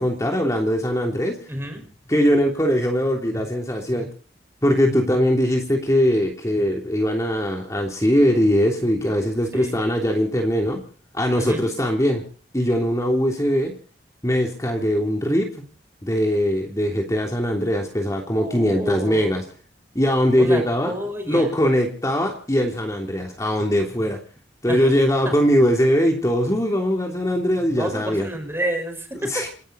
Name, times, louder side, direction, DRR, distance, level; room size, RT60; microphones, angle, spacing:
voice 1, 0.0-1.4 2.1-4.1 4.6-10.8 11.1-12.3 12.5-13.7 14.2-15.5 16.0-19.4 19.9-20.9 21.3-24.2 24.6-28.3 29.2-29.5, equal, 20° left, 1 dB, 3.2 m, -21 dB
voice 2, 1.5-1.8 9.5-9.8 11.4-11.6 18.3-19.3 20.3-21.5 24.7-24.9 25.2-25.3 27.8-29.5, right 1 dB, 15° right, 6 dB, 5.2 m, -29 dB
28.5 x 12.0 x 4.2 m, 0.42 s
head